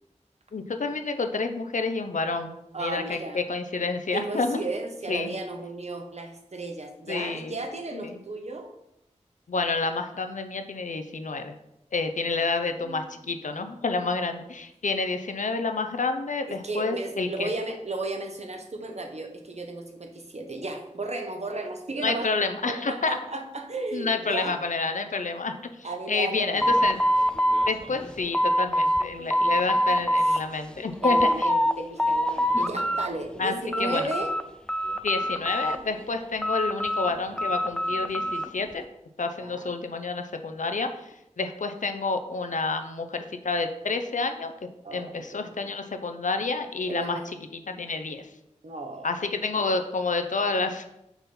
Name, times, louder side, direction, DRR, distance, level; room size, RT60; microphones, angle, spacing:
voice 1, 0.5-2.5 2.8-4.6 5.1-5.3 7.1-7.6 7.9-8.2 9.5-11.5 11.9-17.5 22.0-23.2 23.9-27.0 27.7-31.5 32.5-32.7 33.4-34.1 35.0-38.8 39.2-44.5 44.9-47.2 47.7-48.3 49.0-50.9, left 3 dB, 85° left, 7 dB, 0.6 m, -29 dB
voice 2, 2.7-3.4 4.1-8.7 12.8-13.0 16.6-22.3 22.7-24.6 25.8-27.0 30.2-30.5 31.0-34.3 39.4-39.7 44.8-45.5 46.9-47.2 48.6-49.1, right 2 dB, 60° right, 3 dB, 1.0 m, -34 dB
sound 1, 26.6-29.1 29.3-30.4 30.8-31.7 32.0-33.1 33.4-34.4 34.7-36.0 36.4-38.5, equal, 5° left, 0.3 m, -24 dB
6.0 x 4.3 x 5.4 m, 0.84 s
wide cardioid pair, 65°, 13 cm